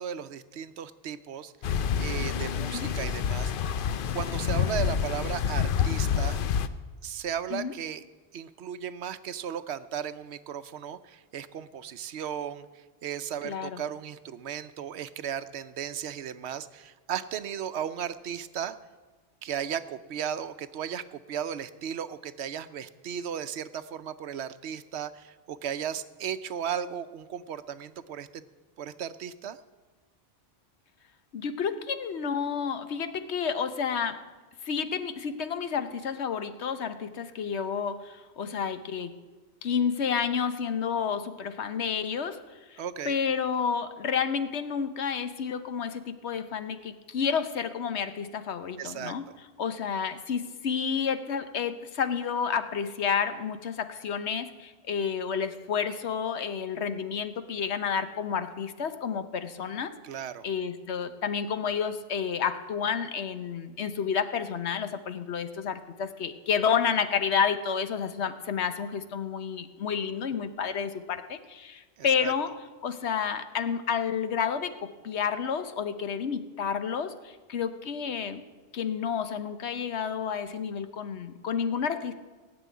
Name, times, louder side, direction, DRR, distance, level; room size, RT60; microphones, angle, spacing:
voice 1, 0.0-1.5 2.0-3.5 4.1-6.4 7.0-8.0 8.3-18.8 19.4-28.4 28.8-29.6 42.8-43.2 48.8-49.4 60.0-60.5 72.0-72.3, right 8 dB, 75° right, 13 dB, 0.9 m, -35 dB
sound 1, 1.6-6.7, left 8 dB, 60° left, 0.7 m, -28 dB
voice 2, 13.4-13.8 31.3-34.2 34.6-39.1 39.6-42.4 42.7-49.3 49.6-59.9 60.4-72.5 72.8-78.4 78.7-82.1, left 7 dB, 80° left, 10 dB, 1.2 m, -30 dB
17.0 x 6.8 x 9.3 m, 1.3 s
omnidirectional pair, 1.1 m